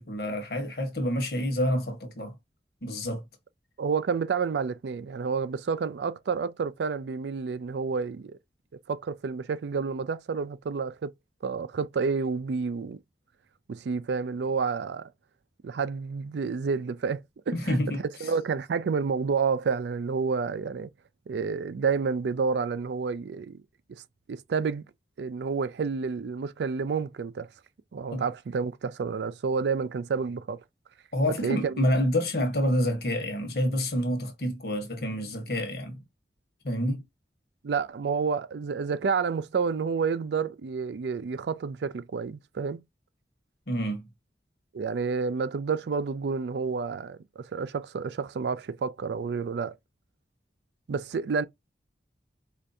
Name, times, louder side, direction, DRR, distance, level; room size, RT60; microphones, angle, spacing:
voice 1, 0.0-2.3 2.8-3.2 17.5-18.0 28.1-28.2 31.1-36.0 36.6-37.0 43.7-44.0, equal, 65° left, 1.1 m, -28 dB
voice 2, 3.8-8.4 8.9-11.1 11.4-13.0 13.7-15.1 15.6-17.8 18.2-20.9 21.3-23.6 24.3-24.8 25.2-27.5 27.9-30.6 31.4-31.9 37.6-42.8 44.7-49.7 50.9-51.4, right 5 dB, 80° right, 0.4 m, -29 dB
4.5 x 2.5 x 2.6 m
head